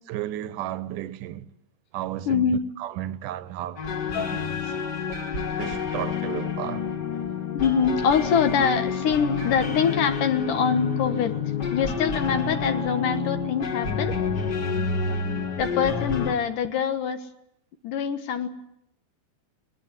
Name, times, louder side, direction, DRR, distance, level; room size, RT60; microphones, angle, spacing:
voice 1, 0.1-1.5 1.9-4.8 5.6-6.9, right 13 dB, 70° right, 2.4 m, -33 dB
voice 2, 2.3-2.6 4.1-4.4 7.5-14.1 15.6-17.3 17.8-18.5, left 6 dB, 65° left, 2.7 m, -24 dB
sound 1, 3.8-16.3, left 6 dB, 35° left, 1.9 m, -28 dB
22.5 x 20.0 x 9.0 m
omnidirectional pair, 4.3 m